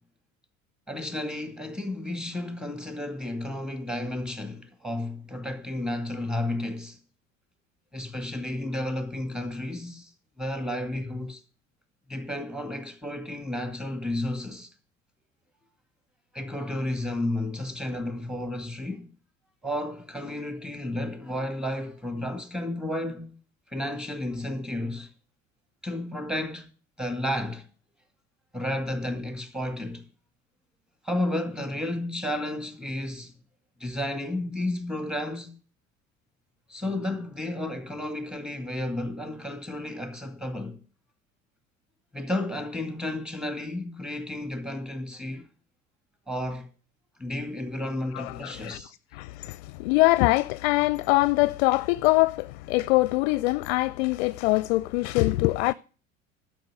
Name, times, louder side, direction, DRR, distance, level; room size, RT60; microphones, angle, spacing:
voice 1, 0.9-7.0 7.9-10.1 10.4-11.4 12.1-14.7 16.3-19.1 19.6-23.3 23.7-25.1 25.8-26.7 27.0-27.7 28.5-30.0 31.0-33.3 33.8-35.5 36.7-40.8 42.1-45.5 46.3-46.7 47.2-48.9, left 1 dB, ahead, 2.1 m, -32 dB
voice 2, 48.1-48.8 49.1-55.7, left 21 dB, 55° left, 0.5 m, -23 dB
11.5 x 5.7 x 7.7 m
figure-of-eight pair, 65°, 40 cm